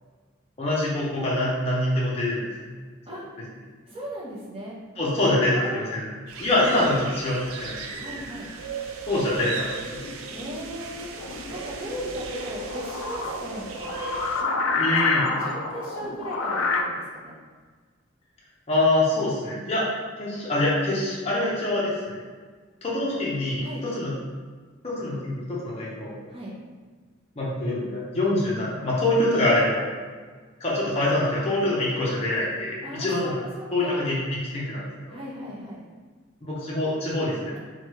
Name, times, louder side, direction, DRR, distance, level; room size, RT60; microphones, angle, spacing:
voice 1, 0.6-2.5 5.0-6.1 6.4-8.1 9.0-9.7 14.8-15.3 18.7-19.9 20.2-22.2 22.8-24.1 24.8-26.1 27.4-29.9 30.6-33.4 33.7-35.2 36.4-37.5, left 1 dB, 30° left, -6 dB, 0.6 m, -25 dB
voice 2, 3.9-4.7 5.5-5.9 7.9-8.5 10.3-11.1 11.5-13.8 14.4-14.5 14.9-15.0 15.3-17.3 23.6-23.8 26.3-26.5 32.8-33.3 33.6-34.1 35.1-35.8, right 1 dB, 25° right, -6 dB, 0.7 m, -38 dB
sound 1, 6.3-14.4, right 5 dB, 85° right, 0.3 m, -37 dB
sound 2, 9.8-16.8, left 4 dB, 75° left, 0.4 m, -29 dB
3.1 x 2.3 x 3.0 m, 1.5 s
head